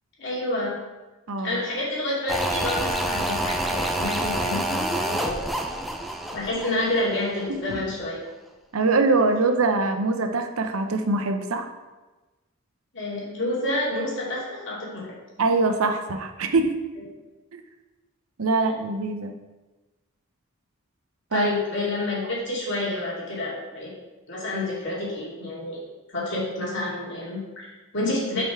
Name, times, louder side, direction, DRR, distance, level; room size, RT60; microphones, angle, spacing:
voice 1, 0.2-0.7 1.4-5.4 6.3-8.2 12.9-15.1 21.3-23.9 24.3-25.8 26.1-28.4, left 2 dB, 60° left, -6 dB, 2.4 m, -28 dB
voice 2, 1.3-1.6 7.5-7.6 8.7-11.7 15.4-16.8 17.5-17.6 18.4-19.3 21.3-21.5, right 3 dB, 85° right, 6 dB, 0.7 m, -23 dB
sound 1, 2.3-7.5 7.7-7.8, right 1 dB, ahead, 0.4 m, -28 dB
5.5 x 5.2 x 4.7 m, 1.2 s
head